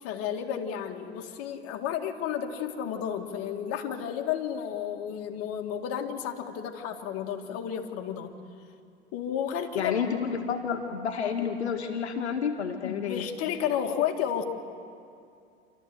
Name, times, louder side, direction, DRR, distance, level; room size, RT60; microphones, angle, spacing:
voice 1, 0.0-8.3 9.1-9.9 12.8-14.4, left 9 dB, 45° left, 4 dB, 2.2 m, -32 dB
voice 2, 9.8-13.3, left 7 dB, 80° left, 4 dB, 1.6 m, -30 dB
28.0 x 13.0 x 7.9 m, 2.4 s
hypercardioid pair, 95°, 33 cm